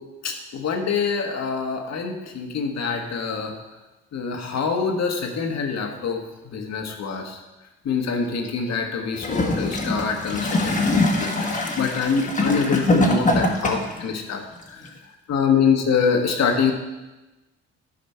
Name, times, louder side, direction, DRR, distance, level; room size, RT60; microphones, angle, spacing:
voice 1, 0.2-3.5 4.1-7.4 7.8-11.5 11.8-14.4 14.7-14.8 15.3-16.7, left 5 dB, 60° left, 4 dB, 1.4 m, -25 dB
Gurgling / Toilet flush, 9.1-14.0 14.9-15.0, left 1 dB, 25° left, 1.4 m, -23 dB
11.0 x 5.0 x 4.4 m, 1.1 s
cardioid pair, 90°, 30 cm